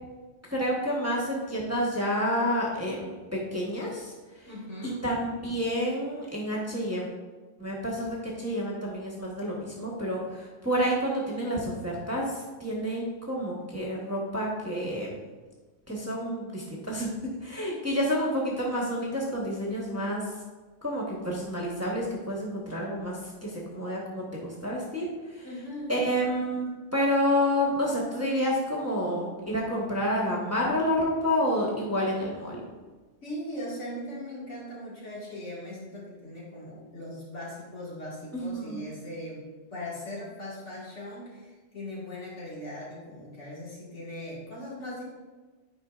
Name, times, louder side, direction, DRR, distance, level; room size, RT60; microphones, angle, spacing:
voice 1, 0.5-4.1 4.8-7.0 7.6-15.2 15.9-20.2 20.8-25.1 25.3-25.4 25.9-32.6 38.3-38.9, equal, 15° right, -5 dB, 1.0 m, -29 dB
voice 2, 4.5-5.0 25.4-26.1 33.2-45.0, left 1 dB, 70° left, -6 dB, 2.2 m, -39 dB
9.5 x 4.9 x 2.4 m, 1.3 s
omnidirectional pair, 1.3 m